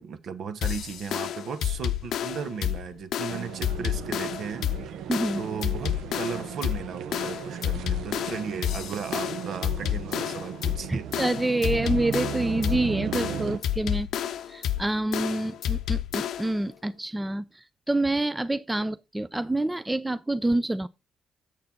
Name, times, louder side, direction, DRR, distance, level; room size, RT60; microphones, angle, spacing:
voice 1, 0.0-4.7 5.3-11.1 15.4-15.5, right 6 dB, 65° right, 1.0 m, -36 dB
sound 1, 0.6-16.6, left 10 dB, 75° left, 0.7 m, -30 dB
sound 2, 3.3-13.6, right 9 dB, 80° right, 0.7 m, -36 dB
voice 2, 5.1-5.4 10.9-14.1 14.5-20.9, right 2 dB, 10° right, 0.4 m, -27 dB
7.5 x 6.6 x 4.1 m
cardioid pair, 90°, 0 cm